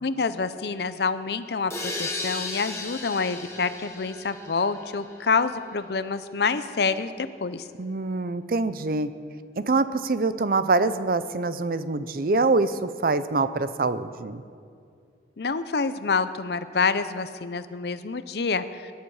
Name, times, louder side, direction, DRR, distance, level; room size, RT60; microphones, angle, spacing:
voice 1, 0.0-7.7 15.4-18.9, left 4 dB, 65° left, 12 dB, 0.6 m, -27 dB
sound 1, 1.7-5.4, left 2 dB, 15° left, 1.8 m, -35 dB
voice 2, 7.8-9.1 9.6-14.4, right 3 dB, 55° right, 13 dB, 0.5 m, -25 dB
20.5 x 10.5 x 4.8 m, 2.3 s
head